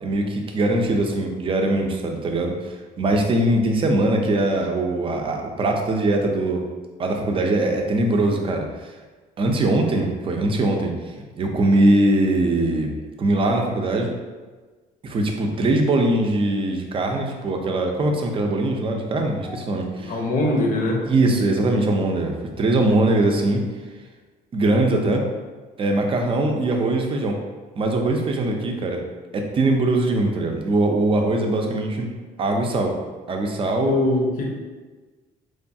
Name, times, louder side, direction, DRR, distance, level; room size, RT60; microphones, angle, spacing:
voice 1, 0.0-6.6 7.0-8.7 9.4-10.9 11.4-14.1 15.0-20.1 21.0-23.6 24.5-25.3 25.8-27.4 27.8-29.0 29.3-32.1 32.4-32.9 33.3-33.9, right 2 dB, 30° right, 2 dB, 0.4 m, -21 dB
voice 2, 20.0-21.0 33.8-34.5, left 2 dB, 55° left, 0 dB, 0.6 m, -22 dB
3.1 x 2.2 x 2.6 m, 1.3 s
cardioid pair, 110°, 17 cm